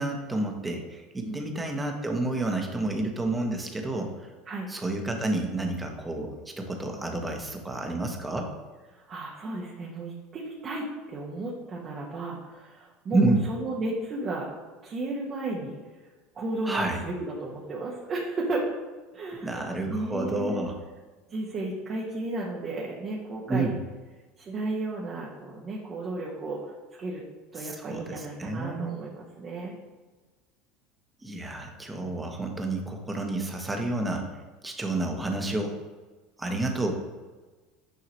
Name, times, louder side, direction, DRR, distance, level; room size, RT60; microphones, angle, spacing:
voice 1, 0.0-4.1 4.7-8.5 13.1-13.5 16.6-17.0 19.4-20.8 23.5-23.8 27.6-29.0 31.2-34.3 34.6-35.8 36.4-36.9, right 2 dB, 15° right, 3 dB, 1.5 m, -29 dB
voice 2, 8.9-14.5 14.8-15.8 16.3-18.6 19.1-20.7 21.3-23.7 24.4-26.7 27.0-27.2 27.5-29.7, right 2 dB, 35° right, -4 dB, 1.5 m, -34 dB
9.5 x 5.6 x 3.1 m, 1.3 s
figure-of-eight pair, 75°, 0 cm